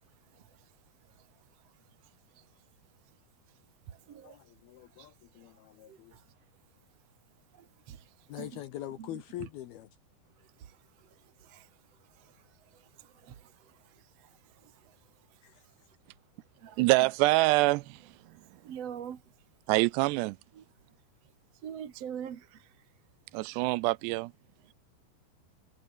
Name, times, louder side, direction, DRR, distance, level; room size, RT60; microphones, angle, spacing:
voice 1, 0.0-3.2 3.5-4.5 4.8-7.0 7.5-8.6 9.0-9.5 10.3-16.0 16.4-16.8 18.3-19.5 20.5-20.6 21.2-22.9, right 9 dB, 50° right, 2.1 m, -49 dB
voice 2, 4.2-6.2 8.3-9.9 15.4-15.6, left 13 dB, 70° left, 2.9 m, -43 dB
voice 3, 16.8-18.0 19.7-20.4 23.3-24.3, right 21 dB, 85° right, 2.7 m, -25 dB
omnidirectional pair, 4.9 m